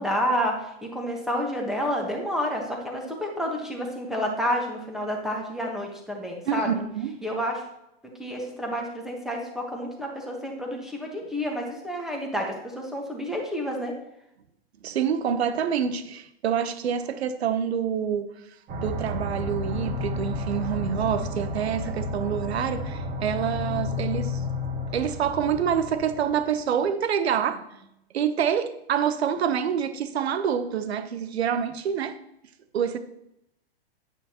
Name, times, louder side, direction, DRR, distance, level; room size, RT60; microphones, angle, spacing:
voice 1, 0.0-6.7 7.2-7.6 8.2-13.9, equal, ahead, 1.3 m, -29 dB
voice 2, 6.5-7.2 14.8-18.3 18.8-24.4 24.9-27.8 28.1-32.2 32.7-33.0, right 8 dB, 80° right, 1.0 m, -27 dB
sound 1, 18.7-26.5, left 2 dB, 30° right, 1.8 m, -31 dB
9.0 x 8.3 x 2.9 m
hypercardioid pair, 135°, 31 cm